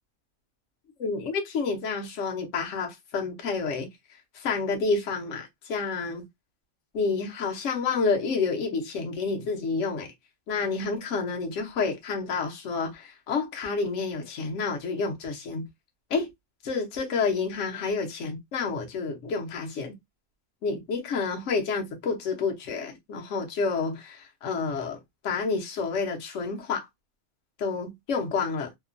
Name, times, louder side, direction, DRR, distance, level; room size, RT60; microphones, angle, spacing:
voice 1, 1.0-3.9 4.3-6.2 6.9-10.1 10.5-15.7 16.1-16.3 16.6-19.9 20.6-26.9 27.6-28.7, left 4 dB, 65° left, 1.1 m, -29 dB
2.9 x 2.2 x 2.5 m
omnidirectional pair, 1.4 m